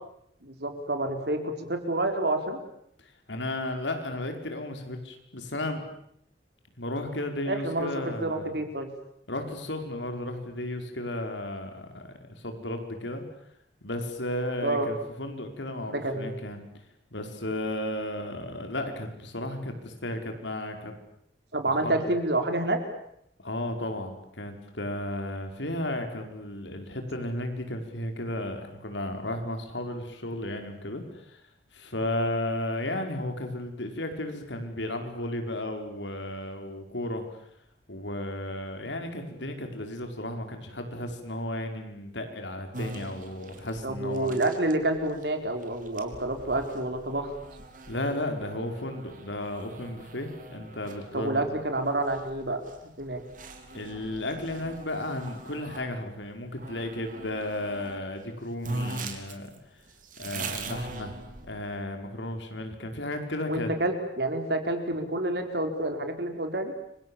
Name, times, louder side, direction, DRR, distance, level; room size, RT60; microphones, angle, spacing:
voice 1, 0.4-2.6 7.5-7.9 8.2-8.9 14.6-14.9 15.9-16.3 21.5-22.8 43.8-47.3 51.1-53.2 63.5-66.7, right 2 dB, 65° right, 6 dB, 4.6 m, -28 dB
voice 2, 3.0-5.8 6.8-8.6 9.3-13.2 13.8-16.6 17.1-20.9 21.8-22.1 23.4-31.4 31.7-37.2 37.9-44.3 47.9-51.5 53.7-59.5 60.2-61.1 61.4-63.7, left 1 dB, 85° left, 5 dB, 5.1 m, -34 dB
sound 1, 42.7-55.9 56.6-58.0 58.3-58.4 58.6-61.7, right 2 dB, 45° right, 3.9 m, -42 dB
29.5 x 25.5 x 7.3 m, 0.73 s
head